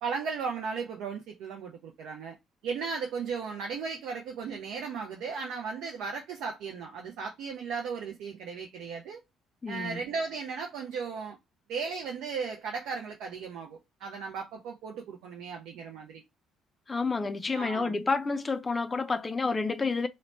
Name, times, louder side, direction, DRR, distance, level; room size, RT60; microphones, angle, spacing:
voice 1, 0.0-2.4 2.6-9.2 9.7-11.4 11.7-16.2 17.5-17.9, right 5 dB, 60° right, 0.5 m, -36 dB
voice 2, 9.6-10.0 16.9-20.1, left 4 dB, 25° left, 0.4 m, -29 dB
3.0 x 2.1 x 3.9 m
figure-of-eight pair, 45°, 0 cm